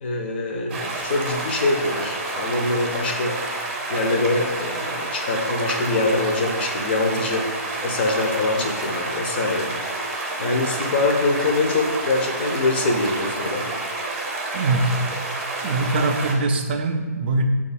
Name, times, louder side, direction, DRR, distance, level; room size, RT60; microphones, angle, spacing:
voice 1, 0.0-3.4 3.9-7.5 7.8-9.7 10.4-13.7, left 2 dB, 40° left, 2 dB, 0.6 m, -24 dB
sound 1, 0.7-16.3, right 2 dB, 20° right, 0.7 m, -29 dB
voice 2, 14.5-14.9 15.6-17.5, right 2 dB, 40° right, 4 dB, 0.4 m, -22 dB
4.7 x 2.4 x 4.1 m, 1.3 s
hypercardioid pair, 155°, 9 cm